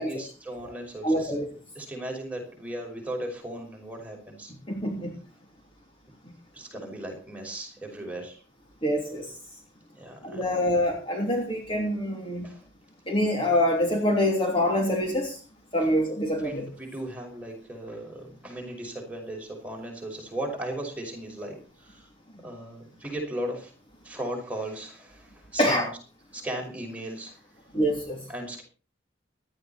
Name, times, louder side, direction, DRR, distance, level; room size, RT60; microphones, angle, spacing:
voice 1, 0.0-1.3 1.8-4.5 6.5-8.4 9.9-10.5 12.4-12.6 16.4-22.1 22.4-23.7 24.0-25.9 26.3-27.4 28.3-28.6, right 1 dB, 5° right, 1 dB, 5.7 m, -37 dB
voice 2, 1.0-1.5 4.5-5.2 8.8-9.3 10.2-12.5 13.1-15.4 15.7-16.7 22.3-22.4 25.6-25.9 27.7-28.3, left 1 dB, 25° left, 1 dB, 3.0 m, -26 dB
18.5 x 12.5 x 4.4 m, 0.35 s
head